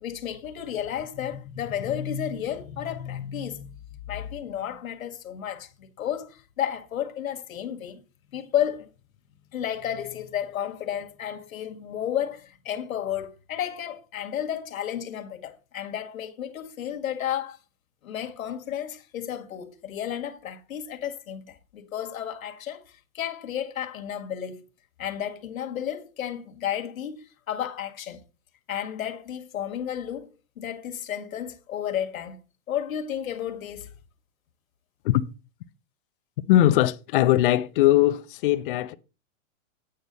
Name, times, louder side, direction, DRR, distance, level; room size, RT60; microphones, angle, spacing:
voice 1, 0.0-3.8 4.1-8.0 8.3-8.9 9.5-17.6 18.0-24.6 25.0-28.2 28.7-30.3 30.6-32.4 32.7-33.9, left 10 dB, 80° left, 1.9 m, -32 dB
voice 2, 36.5-38.9, left 14 dB, 40° left, 0.6 m, -20 dB
8.7 x 8.4 x 4.0 m
hypercardioid pair, 150°, 41 cm